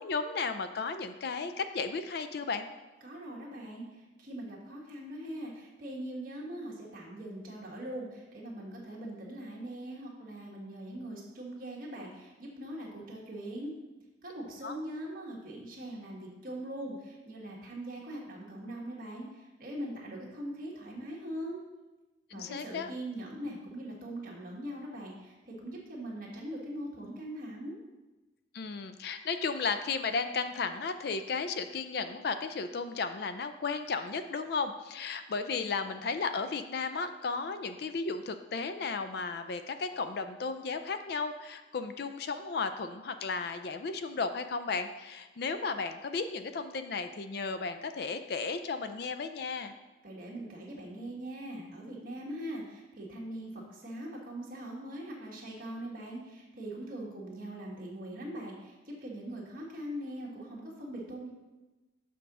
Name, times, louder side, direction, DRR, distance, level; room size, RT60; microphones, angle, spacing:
voice 1, 0.0-2.6 14.6-14.8 22.3-22.9 28.5-49.7, left 4 dB, 55° left, 9 dB, 0.4 m, -34 dB
voice 2, 3.0-13.7 14.2-21.6 22.3-27.8 50.0-61.3, right 1 dB, 45° right, -3 dB, 1.6 m, -41 dB
6.8 x 3.8 x 6.0 m, 1.1 s
head